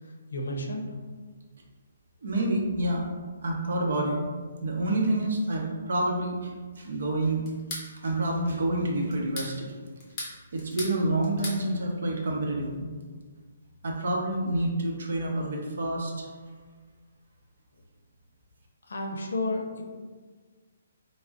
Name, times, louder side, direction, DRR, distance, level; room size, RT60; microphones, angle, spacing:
voice 1, 0.3-0.9 18.9-19.8, left 2 dB, 85° left, 2 dB, 0.6 m, -31 dB
voice 2, 2.2-3.0 3.4-4.3 4.6-7.4 8.0-9.7 10.5-12.9 13.8-16.3, right 1 dB, 60° right, 0 dB, 0.7 m, -28 dB
sound 1, 7.5-7.9 9.1-9.5 10.0-11.0 11.2-11.6, left 2 dB, 20° left, 0.6 m, -37 dB
3.7 x 2.0 x 3.5 m, 1.5 s
hypercardioid pair, 175°, 0 cm